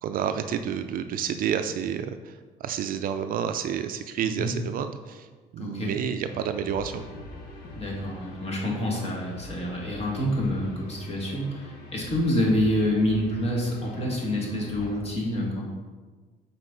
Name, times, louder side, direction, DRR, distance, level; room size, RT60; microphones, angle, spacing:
voice 1, 0.0-5.3 5.5-7.0, right 8 dB, 55° right, 9 dB, 0.4 m, -30 dB
voice 2, 5.6-5.9 7.7-15.7, left 1 dB, 35° left, -2 dB, 1.8 m, -27 dB
sound 1, 6.3-14.9, left 2 dB, 75° left, 1.5 m, -43 dB
6.4 x 4.2 x 3.9 m, 1.4 s
cardioid pair, 110°, 17 cm